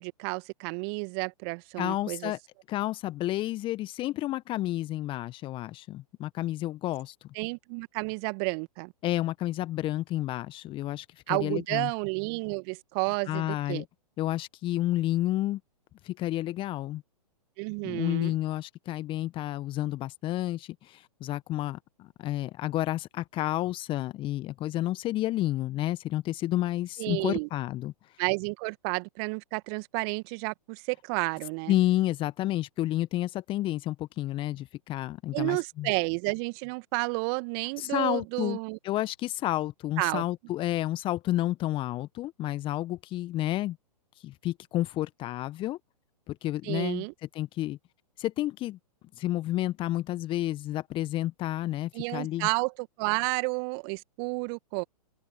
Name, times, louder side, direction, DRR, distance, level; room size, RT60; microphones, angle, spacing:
voice 1, 0.0-2.3 7.4-8.9 11.3-13.8 17.6-18.3 27.0-27.5 28.2-31.7 35.3-38.8 40.0-40.2 46.6-47.1 51.9-54.8, right 35 dB, 35° right, 2.1 m, -31 dB
voice 2, 1.8-2.4 2.7-7.1 9.0-11.9 13.3-13.8 14.2-15.6 16.0-17.0 17.8-27.9 31.7-35.9 37.8-38.6 38.8-43.8 44.2-45.8 46.3-47.0 47.3-47.8 48.2-48.8 49.2-52.5, left 15 dB, 25° left, 1.5 m, -30 dB
figure-of-eight pair, 115°, 21 cm